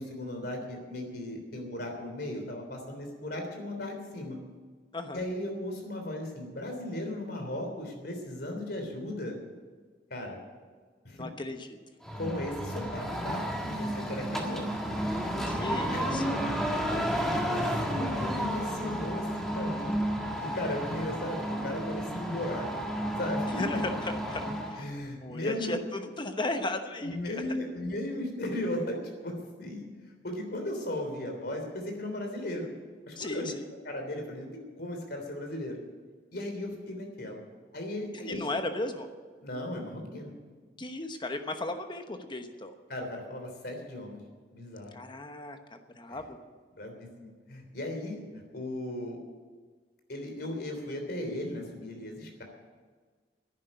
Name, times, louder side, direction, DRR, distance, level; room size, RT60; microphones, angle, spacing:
voice 1, 0.0-4.4 5.1-9.4 10.1-10.4 11.0-11.3 12.2-13.4 13.7-14.6 15.9-16.4 16.9-20.0 20.4-22.7 23.2-23.8 24.8-25.8 27.0-29.9 30.2-32.7 33.1-33.5 33.8-34.5 34.8-35.8 36.3-37.4 37.7-38.4 39.4-40.3 42.9-44.2 44.5-45.0 46.1-46.2 46.8-48.2 48.5-49.2 50.1-52.4, left 1 dB, 65° left, 3 dB, 3.3 m, -36 dB
voice 2, 11.1-11.7 15.5-16.2 23.5-24.4 24.7-25.0 25.2-27.4 33.2-33.7 38.1-39.1 40.8-42.7 44.9-46.4, left 2 dB, 25° left, 7 dB, 1.0 m, -35 dB
sound 1, 12.0-24.8, equal, ahead, 1.7 m, -32 dB
11.0 x 9.8 x 9.9 m, 1.5 s
head